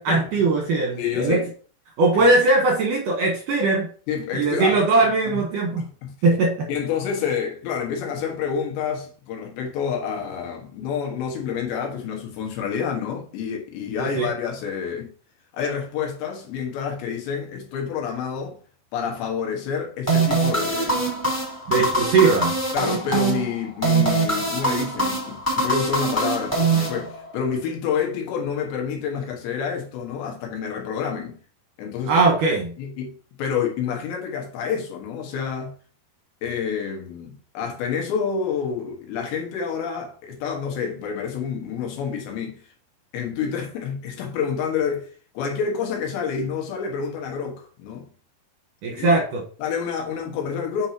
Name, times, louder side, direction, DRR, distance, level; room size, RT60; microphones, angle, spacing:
voice 1, 0.0-1.4 2.0-3.9 4.3-5.9 6.2-6.7 14.0-14.3 21.7-22.6 32.1-32.7 48.8-49.4, right 3 dB, 65° right, 2.2 m, -20 dB
voice 2, 1.0-1.5 2.2-2.4 4.1-5.4 5.8-6.1 6.7-15.1 15.5-18.6 18.9-21.1 21.7-21.8 22.7-31.3 31.8-32.1 32.8-33.1 33.4-35.7 36.4-42.6 43.1-45.1 45.4-48.1 48.9-49.2 49.6-50.9, left 7 dB, 75° left, 3.6 m, -28 dB
sound 1, 20.1-27.4, right 3 dB, 5° left, 3.1 m, -23 dB
8.7 x 5.9 x 2.9 m
omnidirectional pair, 5.2 m